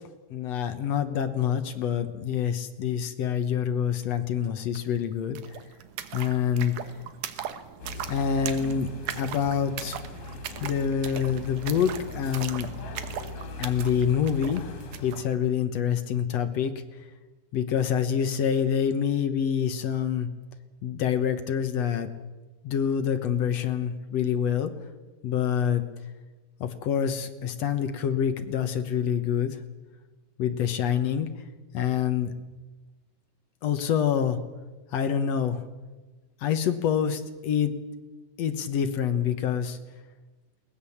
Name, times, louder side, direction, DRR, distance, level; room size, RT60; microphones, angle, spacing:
voice 1, 0.3-5.4 6.1-6.7 8.1-8.9 9.2-10.0 10.6-12.7 13.6-14.7 15.0-16.7 17.5-20.3 20.8-22.1 22.6-24.7 25.2-25.8 26.6-29.6 30.4-31.3 31.7-32.3 33.6-34.4 34.9-35.6 36.4-37.7 38.4-39.8, left 8 dB, 60° left, 9 dB, 1.8 m, -26 dB
sound 1, 4.7-4.8 5.1-15.2, right 10 dB, 70° right, 2.4 m, -39 dB
sound 2, 7.8-15.2, left 2 dB, 85° left, 4.3 m, -40 dB
21.5 x 19.5 x 7.2 m, 1.2 s
omnidirectional pair, 4.2 m